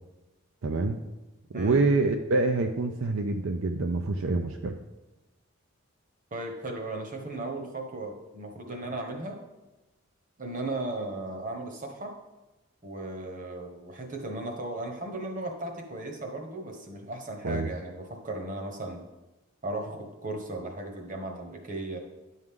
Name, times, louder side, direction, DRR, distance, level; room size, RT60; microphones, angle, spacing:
voice 1, 0.6-1.0 1.5-4.8 17.4-17.7, right 3 dB, 65° right, 5 dB, 0.5 m, -26 dB
voice 2, 6.3-9.4 10.4-12.1 12.8-19.0 19.6-22.0, right 2 dB, 35° right, 3 dB, 1.2 m, -36 dB
11.0 x 6.4 x 3.7 m, 1.1 s
head